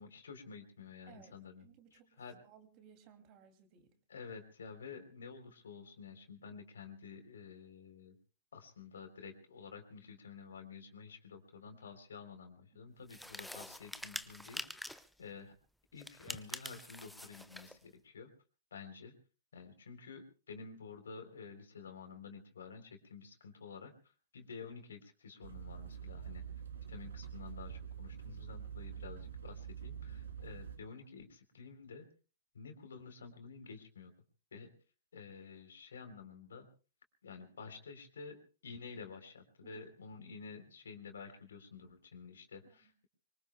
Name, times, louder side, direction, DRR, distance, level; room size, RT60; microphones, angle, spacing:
voice 1, 0.0-1.6 1.9-2.4 4.1-8.2 8.5-15.5 15.9-18.3 18.7-19.1 19.5-23.9 24.3-26.4 26.9-32.1 32.5-34.1 34.5-34.7 35.1-36.7 37.2-42.9, left 5 dB, 65° left, 7 dB, 3.6 m, -50 dB
voice 2, 1.1-2.1 2.4-3.9 12.7-12.9 39.7-39.9 42.7-42.9, right 8 dB, 35° right, 7 dB, 2.7 m, -61 dB
sound 1, 13.1-15.1 16.0-17.8, left 1 dB, ahead, 0.8 m, -46 dB
sound 2, 25.4-30.8, right 8 dB, 65° right, 3.2 m, -46 dB
25.0 x 24.0 x 2.3 m, 0.38 s
figure-of-eight pair, 110°, 0 cm